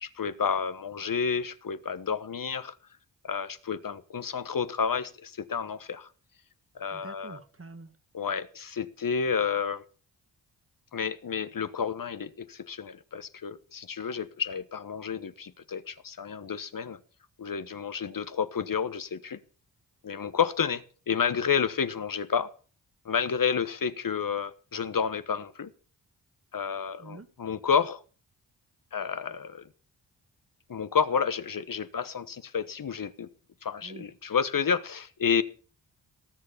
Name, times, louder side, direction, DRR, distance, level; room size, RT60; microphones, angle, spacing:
voice 1, 0.0-2.7 3.2-6.1 6.7-7.4 8.1-9.8 10.9-17.0 17.4-19.4 20.0-22.5 23.0-25.7 26.5-28.0 28.9-29.7 30.7-33.3 33.6-35.4, left 6 dB, 50° left, 13 dB, 1.2 m, -30 dB
voice 2, 6.9-7.9 27.0-27.3 33.8-34.1, right 3 dB, 30° right, 10 dB, 2.0 m, -46 dB
18.5 x 6.6 x 7.2 m, 0.40 s
supercardioid pair, 40°, 43 cm